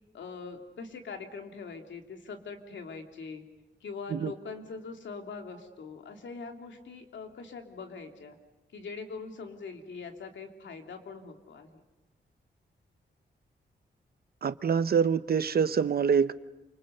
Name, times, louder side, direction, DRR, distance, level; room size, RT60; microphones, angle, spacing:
voice 1, 0.1-3.4 3.8-8.4 8.7-11.8, left 4 dB, 85° left, 4 dB, 3.0 m, -42 dB
voice 2, 14.4-16.3, right 6 dB, 55° right, 13 dB, 0.9 m, -25 dB
29.0 x 26.0 x 6.7 m, 1.0 s
wide cardioid pair, 125°, 19 cm